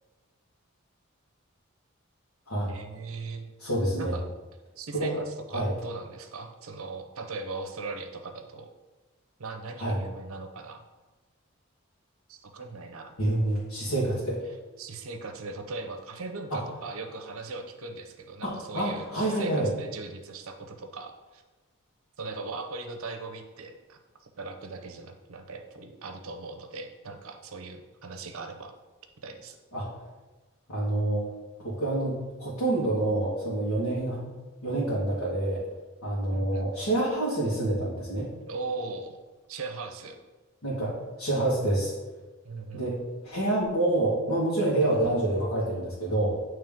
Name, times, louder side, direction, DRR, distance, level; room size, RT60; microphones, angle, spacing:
voice 1, 2.7-3.5 4.0-4.2 4.8-8.7 9.4-10.8 12.3-13.1 13.8-13.9 14.8-21.4 22.2-24.0 24.4-28.7 29.2-29.6 36.3-36.7 38.5-39.2 39.5-40.2 42.4-42.9, right 3 dB, 80° right, 6 dB, 0.7 m, -39 dB
voice 2, 3.6-4.2 4.9-5.2 5.5-5.7 9.8-10.0 13.2-14.4 16.5-16.6 18.4-19.7 29.7-29.9 30.7-31.2 31.6-34.3 34.6-35.6 36.0-38.3 40.6-41.9 42.7-43.0 43.2-46.3, right 1 dB, 90° left, -8 dB, 1.6 m, -27 dB
8.9 x 3.1 x 3.6 m, 1.2 s
head